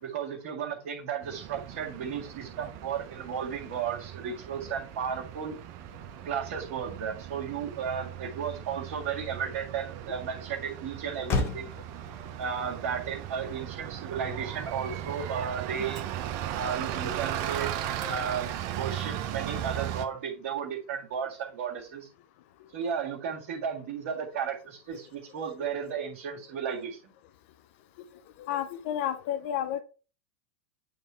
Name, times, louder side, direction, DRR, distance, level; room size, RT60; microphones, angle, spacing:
voice 1, 0.0-5.6 6.2-11.7 12.4-16.0 16.6-17.7 18.1-22.1 22.7-27.0, right 7 dB, 70° right, 1.8 m, -34 dB
Bus, 1.2-20.1, right 11 dB, 50° right, 0.9 m, -37 dB
Motor vehicle (road), 8.2-15.8, left 4 dB, 35° left, 1.4 m, -39 dB
voice 2, 28.4-29.8, left 10 dB, 60° left, 0.6 m, -31 dB
8.5 x 3.5 x 4.3 m
hypercardioid pair, 120°, 8 cm